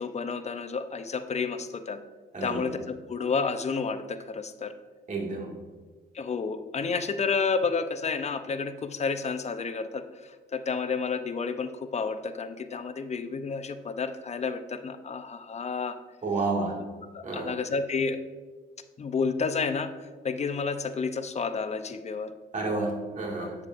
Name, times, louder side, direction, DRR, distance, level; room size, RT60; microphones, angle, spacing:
voice 1, 0.0-2.0 2.4-4.7 6.1-16.0 17.1-18.2 19.0-19.9 20.2-22.3 23.4-23.5, left 5 dB, 35° left, 10 dB, 0.6 m, -30 dB
voice 2, 2.3-2.7 5.1-5.5 16.2-16.8 17.2-17.5 22.5-23.6, right 3 dB, 40° right, -1 dB, 2.0 m, -30 dB
8.2 x 7.3 x 2.5 m, 1.4 s
cardioid pair, 90°, 20 cm